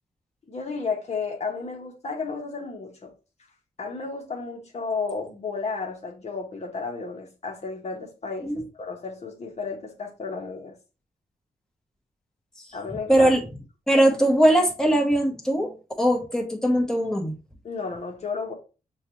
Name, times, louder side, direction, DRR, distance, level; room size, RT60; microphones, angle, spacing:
voice 1, 0.5-3.1 3.8-10.8 12.7-13.3 17.6-18.5, left 4 dB, 45° left, 0.9 m, -33 dB
voice 2, 13.1-13.4 13.9-15.7 16.0-17.4, right 1 dB, 5° left, 0.9 m, -20 dB
6.2 x 2.3 x 3.0 m
wide cardioid pair, 130°, 15 cm